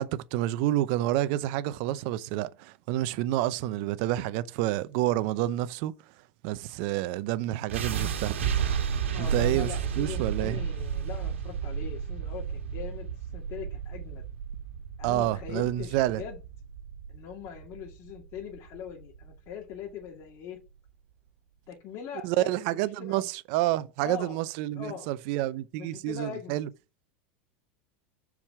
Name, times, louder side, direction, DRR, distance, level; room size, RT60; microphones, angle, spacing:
voice 1, 0.0-5.9 6.4-8.4 9.2-10.6 15.0-16.2 22.2-26.7, right 14 dB, 60° right, 0.7 m, -29 dB
sound 1, 7.7-19.7, right 7 dB, 90° right, 1.6 m, -32 dB
voice 2, 9.1-14.2 15.0-16.4 17.1-20.6 21.7-23.3 24.0-24.4 24.7-25.1 25.7-26.6, left 8 dB, 50° left, 2.3 m, -41 dB
7.2 x 4.9 x 5.8 m
hypercardioid pair, 105°, 6 cm